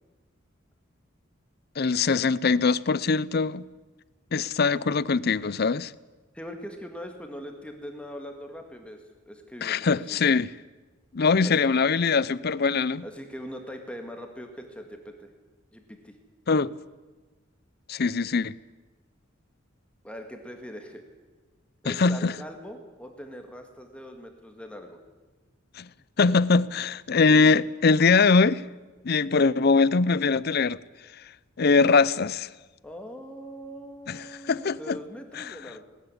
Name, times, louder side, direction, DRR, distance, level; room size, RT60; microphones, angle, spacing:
voice 1, 1.8-3.6 4.3-5.9 9.6-10.5 11.1-13.0 16.5-16.7 17.9-18.6 21.9-22.3 25.8-25.9 26.2-28.6 29.0-30.8 31.6-32.5 34.1-35.0 35.4-35.5, left 4 dB, 50° left, 0.6 m, -22 dB
voice 2, 6.3-10.2 11.4-11.7 13.0-15.3 15.7-16.1 20.0-21.0 21.8-25.0 32.8-35.8, equal, 5° left, 1.9 m, -41 dB
19.0 x 14.0 x 9.8 m
head